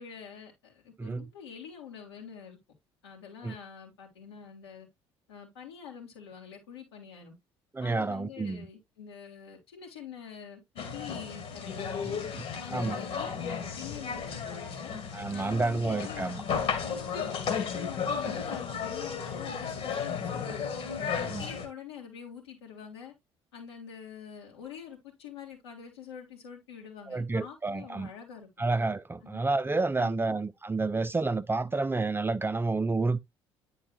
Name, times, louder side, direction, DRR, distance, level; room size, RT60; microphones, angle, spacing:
voice 1, 0.0-2.6 3.0-4.9 5.3-7.4 7.8-12.0 12.6-14.9 15.3-16.3 17.2-20.7 21.1-23.1 23.5-28.6 29.2-29.4 30.0-30.3, left 7 dB, 75° left, 2.8 m, -46 dB
voice 2, 7.7-8.7 12.0-12.5 12.7-13.0 15.1-16.4 21.2-21.5 27.1-28.1 28.6-33.2, right 3 dB, 15° right, 0.5 m, -30 dB
sound 1, 10.8-21.7, left 6 dB, 50° left, 2.2 m, -34 dB
10.0 x 4.5 x 2.7 m
figure-of-eight pair, 55°, 14 cm